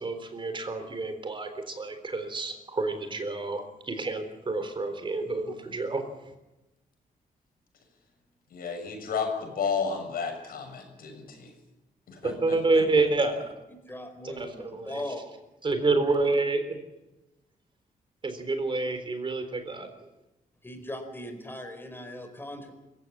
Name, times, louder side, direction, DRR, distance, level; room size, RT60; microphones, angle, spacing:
voice 1, 0.0-6.0 12.2-13.4 14.2-15.0 15.6-16.8 18.2-19.9, right 3 dB, 35° right, 8 dB, 3.8 m, -28 dB
voice 2, 8.5-11.5 12.1-12.8, left 5 dB, 80° left, 4 dB, 6.9 m, -32 dB
voice 3, 13.9-15.2 20.6-22.7, left 1 dB, 15° left, 6 dB, 4.7 m, -39 dB
24.5 x 15.5 x 8.8 m, 0.98 s
cardioid pair, 115°, 15 cm